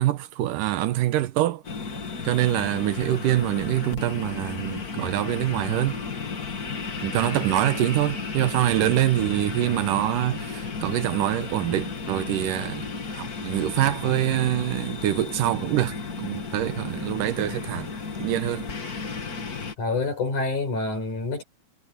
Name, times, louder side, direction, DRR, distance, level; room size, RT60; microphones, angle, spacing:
voice 1, 0.0-1.6 2.2-6.0 7.0-17.9 18.2-18.7, right 13 dB, 85° right, 2.7 m, -25 dB
sound 1, 1.6-19.7, left 4 dB, 30° left, 2.2 m, -34 dB
voice 2, 19.8-21.4, left 3 dB, 70° left, 8.2 m, -27 dB
omnidirectional pair, 3.7 m